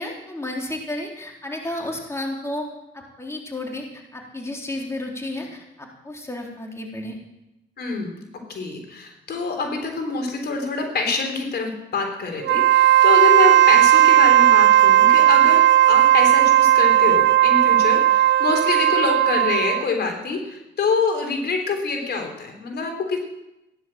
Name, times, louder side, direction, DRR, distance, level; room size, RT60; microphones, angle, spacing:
voice 1, 0.0-2.7 2.9-7.2, left 1 dB, 15° left, 0 dB, 3.7 m, -32 dB
voice 2, 7.8-8.1 8.5-15.6 15.9-23.2, left 4 dB, 55° left, 3 dB, 3.6 m, -25 dB
Wind instrument woodwind instrument, 12.4-19.9, right 12 dB, 70° right, 0.5 m, -15 dB
16.5 x 11.0 x 7.7 m, 0.91 s
cardioid pair, 90°, 20 cm